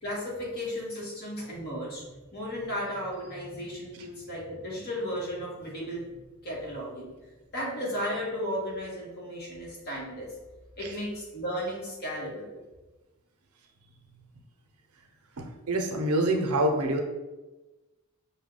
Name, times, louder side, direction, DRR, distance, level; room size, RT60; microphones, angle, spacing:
voice 1, 0.0-7.1 7.5-10.3 10.8-12.5, equal, 45° left, -4 dB, 1.4 m, -35 dB
voice 2, 15.4-17.0, right 1 dB, 90° right, 4 dB, 0.6 m, -26 dB
5.5 x 2.2 x 3.7 m, 1.1 s
head